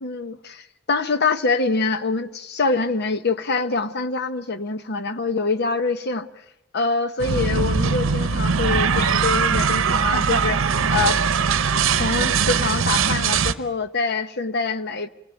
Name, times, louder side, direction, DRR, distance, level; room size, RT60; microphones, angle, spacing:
voice 1, 0.0-6.3 6.7-11.2 12.0-15.1, left 4 dB, 55° left, 1.0 m, -25 dB
sound 1, 7.2-13.5, right 5 dB, 70° right, 0.8 m, -21 dB
27.0 x 19.0 x 9.0 m
head